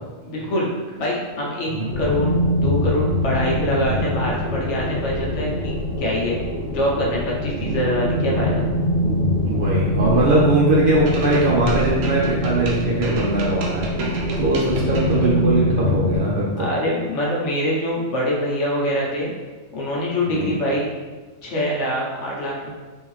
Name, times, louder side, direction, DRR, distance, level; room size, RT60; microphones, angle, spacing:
voice 1, 0.2-0.7 1.0-2.4 2.6-6.4 6.7-8.7 10.2-10.4 16.6-19.3 19.7-20.9 21.4-22.7, equal, 65° left, -3 dB, 1.1 m, -24 dB
sound 1, 1.9-16.2, equal, 10° right, 0.7 m, -23 dB
voice 2, 9.0-16.7 20.3-20.5, right 1 dB, 55° right, -5 dB, 0.7 m, -21 dB
sound 2, 11.1-15.3, right 3 dB, 75° right, 1.0 m, -32 dB
3.6 x 2.7 x 3.1 m, 1.3 s
omnidirectional pair, 1.4 m